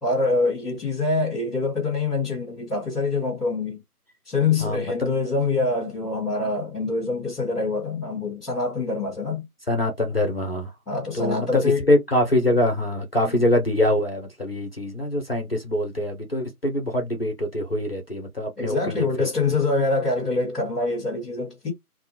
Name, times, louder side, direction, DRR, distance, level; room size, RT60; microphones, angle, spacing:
voice 1, 0.0-3.8 4.3-9.5 10.9-11.9 13.3-13.4 18.6-21.7, left 3 dB, ahead, 0.6 m, -25 dB
voice 2, 4.6-5.1 9.7-10.7 11.1-19.3, left 1 dB, 40° left, 0.6 m, -24 dB
2.6 x 2.1 x 2.7 m
figure-of-eight pair, 155°, 45 cm